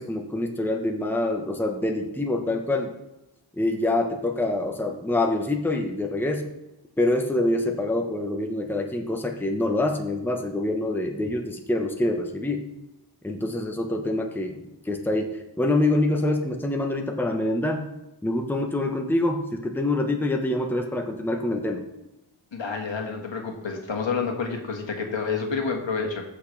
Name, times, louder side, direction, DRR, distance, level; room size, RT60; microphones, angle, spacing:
voice 1, 0.0-2.9 3.6-6.5 7.0-12.6 13.2-14.6 14.8-17.9 18.2-21.8, left 2 dB, 5° left, 2 dB, 1.0 m, -25 dB
voice 2, 22.5-26.2, left 5 dB, 65° left, 2 dB, 1.7 m, -29 dB
14.5 x 6.1 x 3.3 m, 0.94 s
wide cardioid pair, 80°, 49 cm